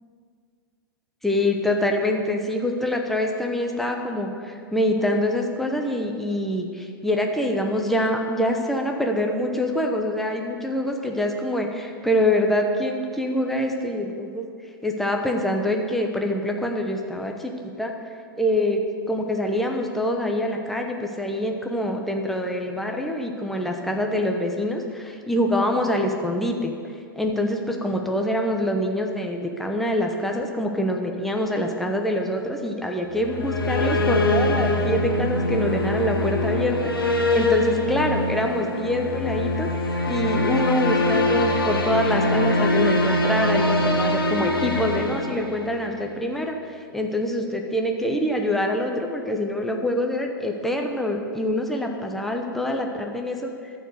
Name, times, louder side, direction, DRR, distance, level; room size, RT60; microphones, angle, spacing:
voice 1, 1.2-14.5 14.8-17.9 18.4-18.8 19.1-26.7 27.2-36.8 37.3-39.7 40.1-53.7, left 1 dB, ahead, 2 dB, 0.9 m, -25 dB
sound 1, 33.1-46.0, left 1 dB, 90° left, 1.2 m, -23 dB
14.0 x 4.7 x 6.5 m, 2.2 s
hypercardioid pair, 110°, 12 cm